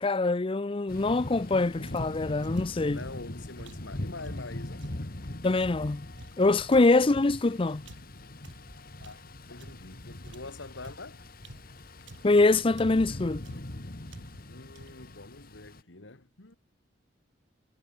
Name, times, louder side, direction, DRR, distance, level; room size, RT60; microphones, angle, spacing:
voice 1, 0.0-3.0 5.4-6.1 6.4-7.8 12.2-13.4, left 3 dB, 30° left, 0.5 m, -24 dB
Thunder / Rain, 0.9-15.8, left 1 dB, 50° left, 1.8 m, -41 dB
sound 1, 1.9-5.1 5.6-10.0 10.2-12.4 12.8-13.2 13.4-13.8 14.1-14.5 14.7-15.1, right 1 dB, 85° right, 2.9 m, -50 dB
voice 2, 2.9-4.9 9.0-9.2 9.5-11.2 14.5-16.6, left 3 dB, 85° left, 2.1 m, -45 dB
head